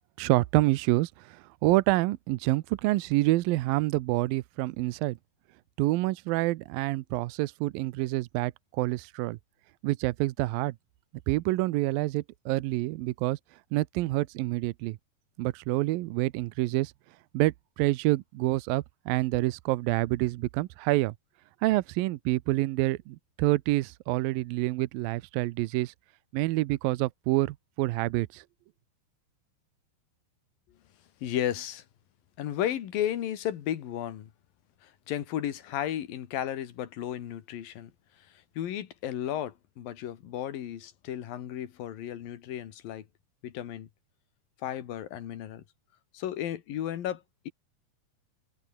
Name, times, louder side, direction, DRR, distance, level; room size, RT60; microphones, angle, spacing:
voice 1, 0.2-5.2 5.8-9.4 9.8-10.7 11.3-13.4 13.7-15.0 15.4-16.9 17.3-21.1 21.6-25.9 26.3-28.4, right 18 dB, 80° right, 2.3 m, -27 dB
voice 2, 31.2-31.9 32.4-34.3 34.8-37.9 38.2-43.1 43.4-43.9 44.6-45.6 46.1-47.5, left 11 dB, 70° left, 3.5 m, -34 dB
omnidirectional pair, 4.5 m